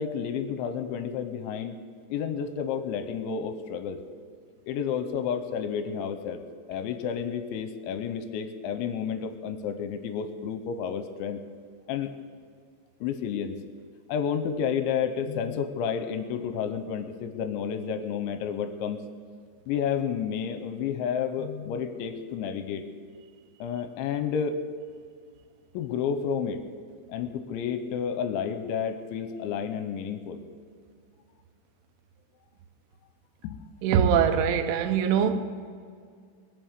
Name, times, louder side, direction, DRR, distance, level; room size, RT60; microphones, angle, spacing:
voice 1, 0.0-1.8 2.1-4.0 4.7-6.4 6.7-11.4 11.9-12.1 13.0-13.5 14.1-19.0 19.7-22.8 23.6-24.6 25.7-26.6 27.1-30.4 33.4-33.6, left 7 dB, 80° left, 9 dB, 3.0 m, -31 dB
voice 2, 33.8-35.4, right 7 dB, 80° right, 8 dB, 3.3 m, -22 dB
21.5 x 7.3 x 8.1 m, 2.1 s
omnidirectional pair, 5.6 m